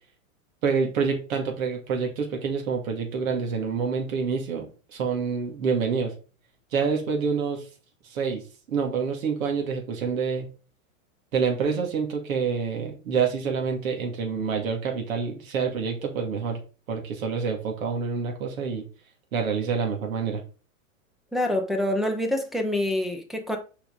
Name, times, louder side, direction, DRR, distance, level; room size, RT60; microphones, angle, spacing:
voice 1, 0.6-6.1 6.7-7.7 8.0-8.4 8.7-10.5 11.3-16.6 16.9-18.9 19.3-20.4, right 5 dB, 70° right, 2.4 m, -27 dB
voice 2, 21.3-23.6, left 1 dB, ahead, 0.4 m, -26 dB
6.7 x 4.9 x 4.0 m
hypercardioid pair, 140°, 42 cm